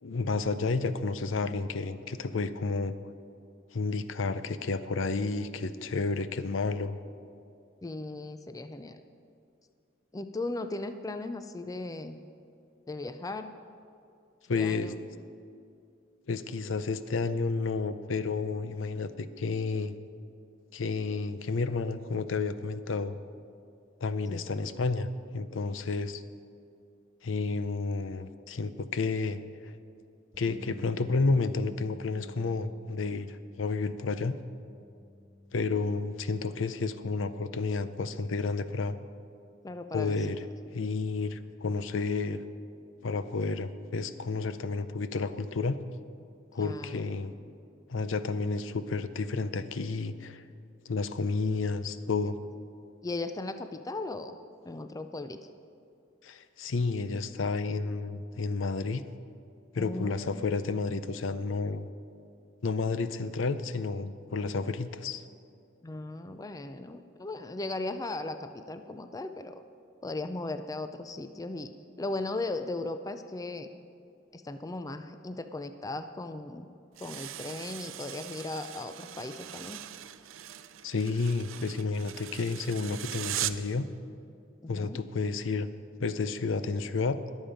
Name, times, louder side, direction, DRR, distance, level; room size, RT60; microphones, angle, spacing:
voice 1, 0.0-3.0 3.7-7.0 14.5-14.9 16.3-19.9 20.7-23.2 24.0-25.1 25.3-26.2 27.2-29.7 30.4-34.4 35.5-39.0 39.9-40.4 40.7-42.4 43.0-45.8 46.5-47.3 47.9-50.4 50.9-52.4 56.2-59.0 59.7-61.9 62.6-65.2 80.8-83.9 84.7-85.7 86.0-87.2, left 4 dB, 70° left, 12 dB, 0.6 m, -31 dB
voice 2, 7.8-9.0 10.1-12.2 12.9-13.5 14.5-14.9 24.3-24.5 39.6-40.2 46.6-47.0 53.0-54.4 54.6-55.4 59.8-60.5 65.8-69.6 70.0-71.7 72.0-73.7 74.3-76.7 77.0-79.8 84.6-85.0, left 2 dB, 20° left, 9 dB, 0.4 m, -37 dB
Bass guitar, 30.3-36.6, left 2 dB, ahead, 3.0 m, -50 dB
sound 1, 77.0-83.7, right 12 dB, 80° right, 0.5 m, -40 dB
21.0 x 7.3 x 5.1 m, 2.4 s
head